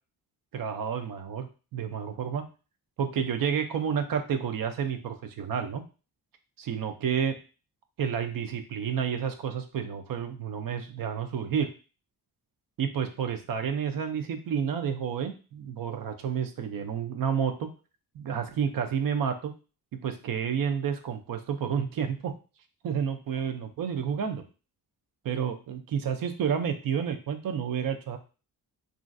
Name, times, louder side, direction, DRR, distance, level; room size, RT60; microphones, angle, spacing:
voice 1, 0.5-2.4 3.0-5.8 6.6-7.4 8.0-11.7 12.8-17.7 18.1-19.5 20.0-22.3 22.8-24.4 25.2-28.2, right 7 dB, 60° right, 7 dB, 0.5 m, -30 dB
3.0 x 2.5 x 2.5 m, 0.34 s
cardioid pair, 105°, 39 cm